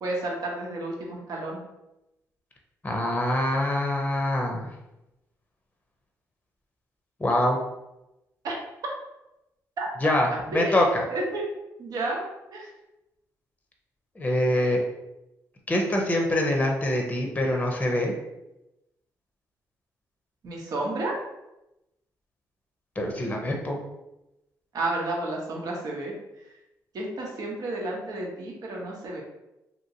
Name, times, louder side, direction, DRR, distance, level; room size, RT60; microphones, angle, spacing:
voice 1, 0.0-1.6 8.4-8.5 9.8-9.9 10.5-11.4 11.8-12.2 12.5-12.7 20.4-21.2 24.7-26.1 26.9-29.2, right 2 dB, 65° right, -2 dB, 1.0 m, -31 dB
voice 2, 2.8-4.7 7.2-7.6 10.0-11.0 14.2-14.8 15.7-18.1 23.0-23.8, left 1 dB, 20° left, 1 dB, 0.7 m, -24 dB
2.9 x 2.8 x 2.8 m, 0.93 s
supercardioid pair, 70°, 7 cm